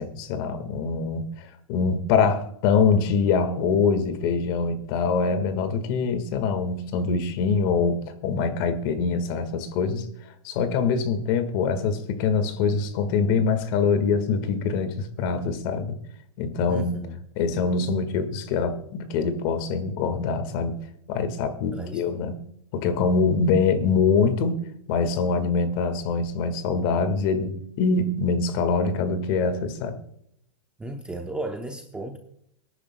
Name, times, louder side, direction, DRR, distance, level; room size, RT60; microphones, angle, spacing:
voice 1, 0.0-10.0 10.4-15.9 16.4-16.9 17.4-20.7 21.1-22.4 22.7-24.6 24.9-29.9, left 5 dB, 40° left, 10 dB, 1.7 m, -24 dB
voice 2, 16.7-17.2 21.7-22.0 30.8-32.2, right 2 dB, 5° right, 4 dB, 0.7 m, -34 dB
24.5 x 10.0 x 2.2 m, 0.72 s
hypercardioid pair, 145°, 17 cm